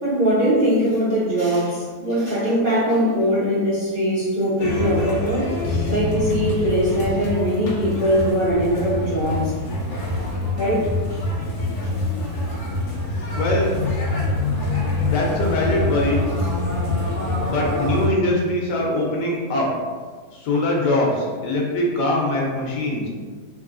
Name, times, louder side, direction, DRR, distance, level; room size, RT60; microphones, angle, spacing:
voice 1, 0.0-5.5 5.9-9.5 10.6-10.9, equal, 40° right, -10 dB, 0.9 m, -21 dB
sound 1, 4.6-18.1, left 2 dB, 60° left, 0.8 m, -25 dB
voice 2, 13.3-13.8 15.0-16.2 17.4-19.7 20.3-23.1, left 1 dB, 85° left, -2 dB, 1.3 m, -22 dB
3.6 x 2.9 x 2.5 m, 1.5 s
omnidirectional pair, 1.8 m